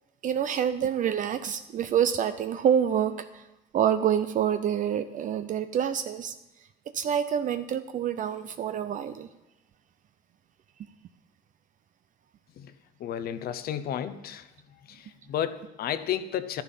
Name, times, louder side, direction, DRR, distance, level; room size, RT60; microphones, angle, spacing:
voice 1, 0.2-3.4 3.7-6.3 6.9-9.3, right 9 dB, 50° right, 10 dB, 0.6 m, -27 dB
voice 2, 13.0-14.5 14.9-16.6, left 10 dB, 65° left, 12 dB, 0.9 m, -32 dB
12.0 x 10.0 x 5.5 m, 0.96 s
cardioid pair, 110°, 17 cm